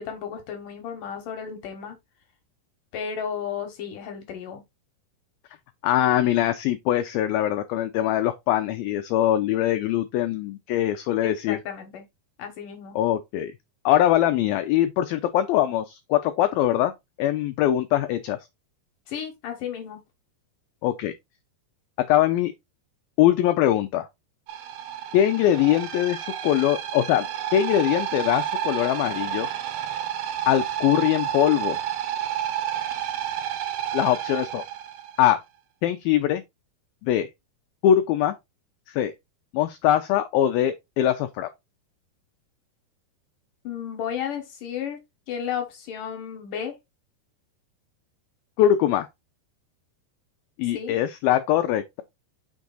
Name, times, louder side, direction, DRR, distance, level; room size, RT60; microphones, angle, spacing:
voice 1, 0.0-2.0 2.9-4.6 11.2-12.1 12.4-13.0 19.1-20.0 43.6-45.0 45.3-46.8 50.7-50.9, left 8 dB, 65° left, 2.3 m, -33 dB
voice 2, 5.8-11.6 13.0-13.5 13.9-16.9 17.2-18.4 20.8-21.1 22.1-22.5 23.2-24.1 25.1-27.3 27.5-29.5 30.5-31.8 33.9-34.6 35.2-35.4 35.8-36.4 37.0-37.3 37.8-38.4 38.9-39.1 39.5-41.5 48.6-49.1 50.6-52.0, left 12 dB, 90° left, 2.1 m, -22 dB
sound 1, 24.5-35.3, right 10 dB, 80° right, 2.9 m, -30 dB
6.3 x 4.6 x 4.0 m
omnidirectional pair, 4.9 m